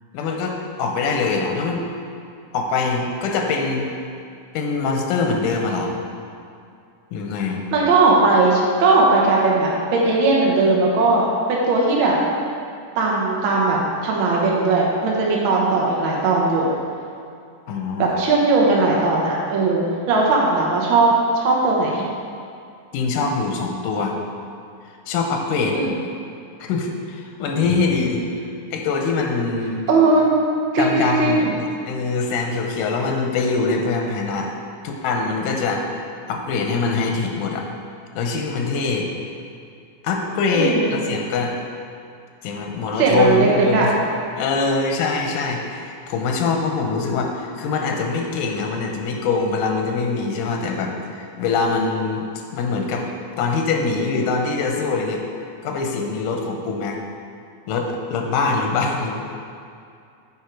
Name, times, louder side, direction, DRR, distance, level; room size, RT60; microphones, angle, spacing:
voice 1, 0.1-1.9 2.5-3.9 4.5-6.0 7.1-7.6 17.7-18.1 22.9-24.2 25.1-25.8 26.7-28.2 28.7-29.8 30.8-34.5 34.8-37.7 38.2-39.1 40.0-41.6 42.4-43.9 44.4-52.3 52.5-53.1 53.4-55.2 55.6-57.0 57.7-59.2, left 4 dB, 90° left, 2 dB, 2.3 m, -23 dB
voice 2, 7.7-12.1 13.0-16.7 18.0-22.0 25.7-25.9 29.9-30.3 30.7-31.5 40.5-40.9 43.0-43.9, right 3 dB, 65° right, -3 dB, 1.3 m, -18 dB
8.7 x 3.9 x 4.6 m, 2.4 s
omnidirectional pair, 3.5 m